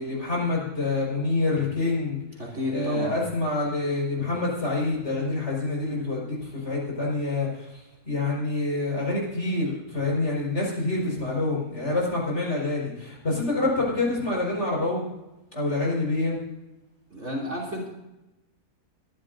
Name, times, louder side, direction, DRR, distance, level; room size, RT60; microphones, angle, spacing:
voice 1, 0.0-2.2 2.7-15.0 15.5-16.4, left 2 dB, 45° left, -3 dB, 5.4 m, -27 dB
voice 2, 2.4-3.2 17.1-17.9, left 1 dB, 45° right, -2 dB, 3.3 m, -31 dB
22.5 x 11.5 x 2.7 m, 0.96 s
omnidirectional pair, 1.7 m